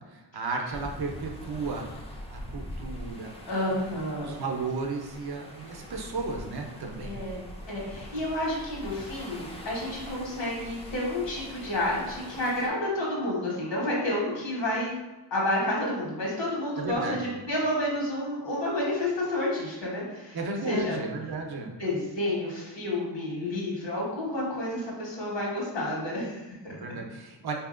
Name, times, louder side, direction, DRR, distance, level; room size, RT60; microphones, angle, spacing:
voice 1, 0.1-1.9 2.3-3.3 4.2-7.1 16.8-17.3 20.3-21.8 26.7-27.5, right 4 dB, 60° right, 2 dB, 0.6 m, -34 dB
sound 1, 0.7-12.7, left 1 dB, 15° left, 0.3 m, -43 dB
voice 2, 3.5-4.3 7.0-14.9 15.3-20.4 20.7-21.0 21.8-26.7, left 1 dB, 80° left, -4 dB, 1.3 m, -30 dB
4.3 x 2.7 x 2.4 m, 1.1 s
wide cardioid pair, 160°, 43 cm